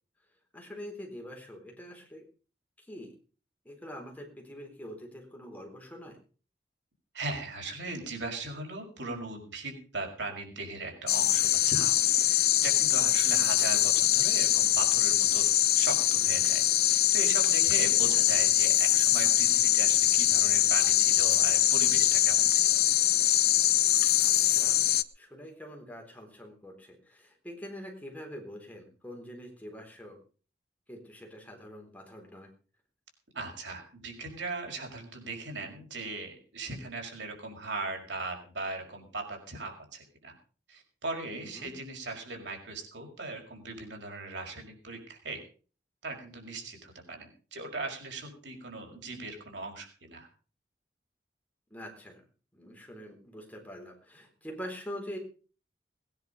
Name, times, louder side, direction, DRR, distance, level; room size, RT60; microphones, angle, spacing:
voice 1, 0.5-2.2 2.8-3.1 3.6-6.2 18.0-18.2 24.2-24.8 25.2-30.2 30.9-32.5 41.6-41.7 51.7-52.2 52.5-55.2, equal, 10° left, 1 dB, 4.0 m, -44 dB
voice 2, 7.1-11.9 12.3-15.4 15.8-16.6 16.9-22.8 33.3-40.3 40.7-45.4 46.0-50.3, right 3 dB, 90° right, 2 dB, 5.6 m, -38 dB
sound 1, 11.1-25.0, left 12 dB, 55° left, 0.7 m, -23 dB
19.5 x 10.5 x 5.3 m, 0.40 s
head